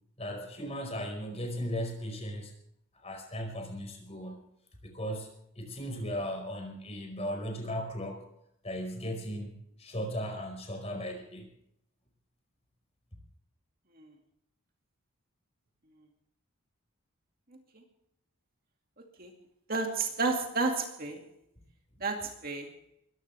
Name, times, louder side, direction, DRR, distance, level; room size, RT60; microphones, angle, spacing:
voice 1, 0.2-2.5 3.0-4.5 4.8-8.2 8.6-11.5, equal, 30° left, 3 dB, 4.9 m, -37 dB
voice 2, 19.7-21.2 22.0-22.7, right 3 dB, 45° right, 3 dB, 2.3 m, -31 dB
22.0 x 16.0 x 3.4 m, 0.74 s
head